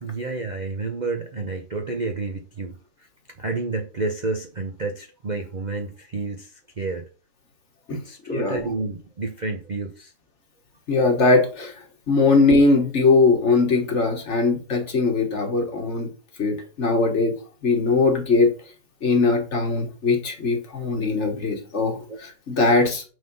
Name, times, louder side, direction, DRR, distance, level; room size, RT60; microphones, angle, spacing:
voice 1, 0.0-2.8 3.4-7.0 7.9-10.1 22.1-22.2, right 3 dB, 60° right, 0.4 m, -30 dB
voice 2, 8.3-8.6 10.9-11.7 12.1-16.1 16.4-17.3 17.6-18.5 19.0-23.0, left 3 dB, 40° left, 1.4 m, -20 dB
6.4 x 3.8 x 5.3 m
omnidirectional pair, 2.0 m